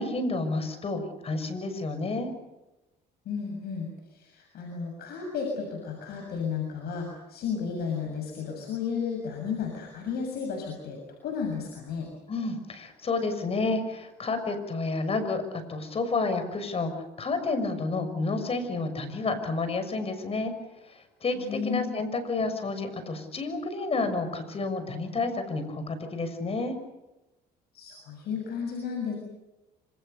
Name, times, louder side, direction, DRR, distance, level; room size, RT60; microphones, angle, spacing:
voice 1, 0.0-2.3 12.3-20.5 20.8-26.8, left 3 dB, 35° left, 9 dB, 6.3 m, -30 dB
voice 2, 3.3-12.1 21.4-21.9 27.7-29.1, left 6 dB, 70° left, 1 dB, 6.9 m, -33 dB
27.0 x 26.5 x 6.9 m, 1.0 s
cardioid pair, 110°, 17 cm